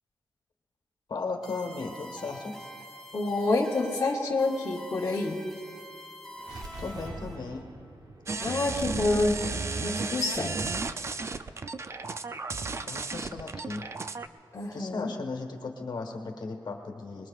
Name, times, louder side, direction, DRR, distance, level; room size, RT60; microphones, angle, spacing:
voice 1, 1.1-2.6 6.8-7.6 12.8-13.8 14.7-17.3, left 3 dB, 60° left, 3 dB, 1.4 m, -36 dB
sound 1, 1.4-7.4, equal, ahead, 4.6 m, -46 dB
voice 2, 3.1-5.4 8.4-10.8 14.5-15.1, left 2 dB, 35° left, -3 dB, 1.1 m, -28 dB
sound 2, 6.4-10.2, right 2 dB, 50° right, 1.1 m, -45 dB
sound 3, 8.3-14.3, right 4 dB, 35° right, 0.4 m, -34 dB
24.5 x 21.0 x 2.5 m, 2.5 s
wide cardioid pair, 150°, 9 cm